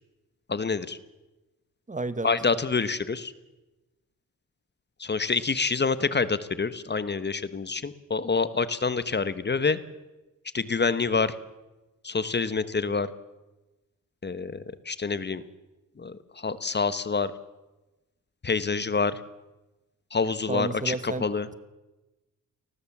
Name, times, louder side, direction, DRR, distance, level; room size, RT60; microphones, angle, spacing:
voice 1, 0.5-1.0 2.2-3.3 5.0-9.8 10.5-11.3 12.0-13.1 14.2-15.4 16.0-17.3 18.4-19.2 20.1-21.4, left 4 dB, 30° left, 14 dB, 1.2 m, -27 dB
voice 2, 1.9-2.3 20.5-21.3, right 2 dB, 25° right, 14 dB, 1.2 m, -31 dB
29.0 x 19.5 x 7.3 m, 1.1 s
cardioid pair, 105°, 33 cm